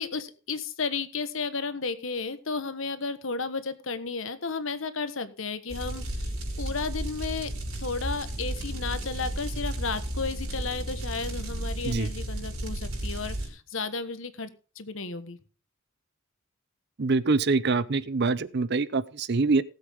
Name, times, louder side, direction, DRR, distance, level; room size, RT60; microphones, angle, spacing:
voice 1, 0.0-7.5 7.8-14.5 14.7-15.4, left 4 dB, 65° left, 11 dB, 1.2 m, -33 dB
sound 1, 5.7-13.5, right 1 dB, 85° right, 5.3 m, -33 dB
voice 2, 17.0-19.6, right 3 dB, 50° right, 17 dB, 0.6 m, -25 dB
18.5 x 7.9 x 3.6 m, 0.36 s
head